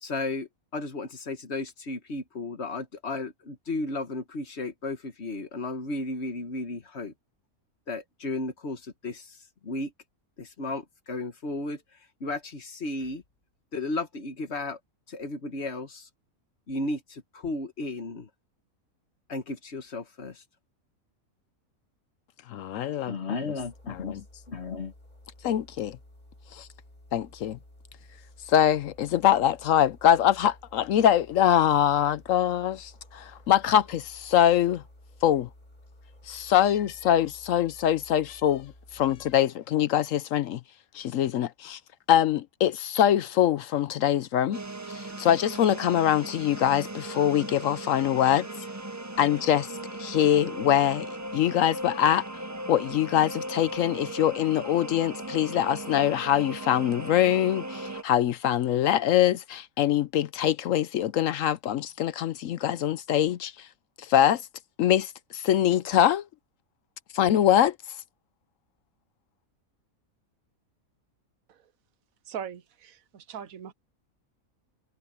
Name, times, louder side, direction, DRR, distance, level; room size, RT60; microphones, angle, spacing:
voice 1, 0.0-7.1 7.9-9.4 9.6-9.9 10.4-11.8 12.2-13.2 13.7-14.8 15.1-16.1 16.7-18.3 19.3-20.4 23.0-24.2 24.5-24.9, left 2 dB, 50° left, 1.6 m, -34 dB
voice 2, 22.5-23.1 23.9-24.2 25.4-26.0 26.6-26.7 27.1-27.6 28.5-34.8 35.2-35.5 36.3-40.6 40.9-41.8 42.1-44.6 44.9-48.5 49.2-49.7 50.0-51.1 51.3-52.2 52.7-63.5 64.1-64.4 64.8-66.2 67.1-67.7, left 11 dB, 70° left, 1.0 m, -23 dB
sound 1, 23.6-39.4, left 1 dB, 30° left, 5.0 m, -53 dB
sound 2, 44.5-58.0, right 1 dB, 15° right, 0.7 m, -38 dB
voice 3, 72.3-73.7, right 8 dB, 75° right, 1.3 m, -40 dB
omnidirectional pair, 1.5 m